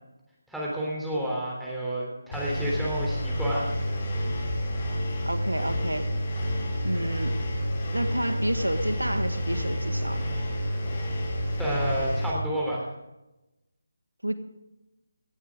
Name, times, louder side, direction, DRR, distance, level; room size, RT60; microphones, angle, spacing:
voice 1, 0.5-3.7 11.6-12.8, right 1 dB, ahead, -6 dB, 3.3 m, -30 dB
Engine, 2.3-12.3, equal, 35° left, 5.8 m, -29 dB
voice 2, 5.2-6.1 6.8-7.4 7.9-10.2 14.2-14.3, right 1 dB, 90° right, 10 dB, 1.6 m, -29 dB
17.5 x 15.0 x 3.7 m, 0.97 s
figure-of-eight pair, 155°, 0 cm